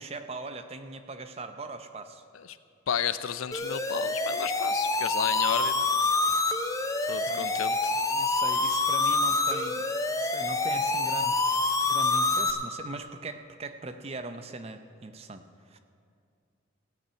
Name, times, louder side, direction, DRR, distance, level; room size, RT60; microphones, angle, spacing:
voice 1, 0.0-2.2 7.1-7.5 8.1-9.9 10.2-15.8, right 2 dB, 30° right, 8 dB, 0.6 m, -40 dB
voice 2, 2.9-5.9 7.1-8.0, left 8 dB, 90° left, 13 dB, 0.5 m, -32 dB
sound 1, 3.5-12.5, left 3 dB, 15° left, 0.5 m, -26 dB
15.5 x 5.6 x 8.8 m, 2.4 s
head